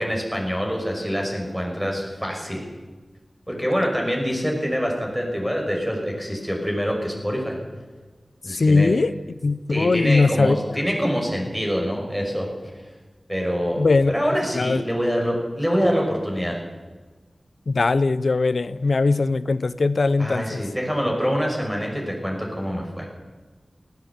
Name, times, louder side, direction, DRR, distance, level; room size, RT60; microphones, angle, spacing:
voice 1, 0.0-2.7 3.5-7.6 8.4-8.9 9.7-12.5 13.3-16.6 20.2-23.1, equal, 5° right, 0 dB, 5.8 m, -25 dB
voice 2, 8.6-9.1 9.4-10.6 13.8-14.2 14.5-14.8 17.7-20.6, left 3 dB, 70° left, 16 dB, 0.8 m, -20 dB
19.0 x 16.5 x 8.4 m, 1.3 s
wide cardioid pair, 80°, 0 cm